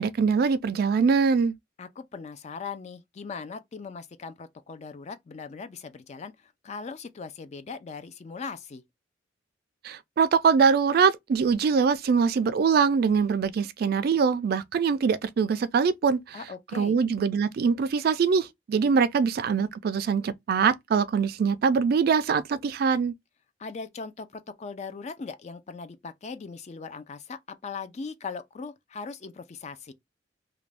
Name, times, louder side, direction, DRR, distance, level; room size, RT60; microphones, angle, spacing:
voice 1, 0.0-1.5 9.8-16.4 16.7-23.1, right 5 dB, 55° right, 0.3 m, -23 dB
voice 2, 1.8-6.3 6.6-8.8 16.3-17.0 23.6-29.9, left 5 dB, 35° left, 0.4 m, -39 dB
2.5 x 2.1 x 3.2 m
head